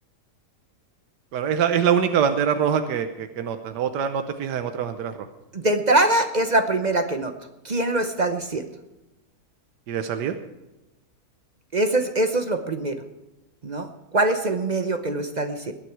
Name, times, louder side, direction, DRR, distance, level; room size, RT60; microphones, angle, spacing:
voice 1, 1.3-5.1 9.9-10.3, right 7 dB, 85° right, 8 dB, 1.5 m, -24 dB
voice 2, 5.5-7.3 7.6-8.6 11.7-13.0 13.6-15.7, right 2 dB, 35° right, 7 dB, 0.7 m, -23 dB
20.0 x 9.1 x 4.7 m, 0.99 s
omnidirectional pair, 1.8 m